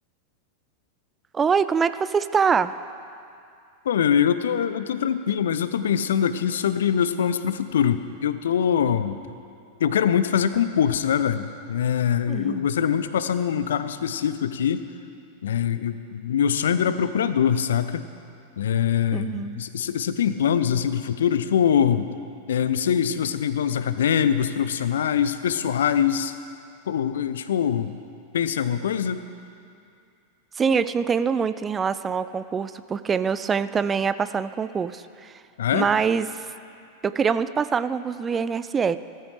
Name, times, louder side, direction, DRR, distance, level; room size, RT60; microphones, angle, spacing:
voice 1, 1.3-2.7 12.3-12.6 19.1-19.6 30.6-35.3 35.7-36.5 37.0-39.0, right 6 dB, 20° right, 14 dB, 0.3 m, -24 dB
voice 2, 3.9-9.2 9.8-14.9 15.4-18.1 18.6-22.1 22.5-26.4 26.9-27.9 28.3-29.2 35.6-35.9, left 8 dB, 65° left, 12 dB, 0.5 m, -23 dB
16.5 x 14.0 x 3.3 m, 2.5 s
figure-of-eight pair, 90°, 0 cm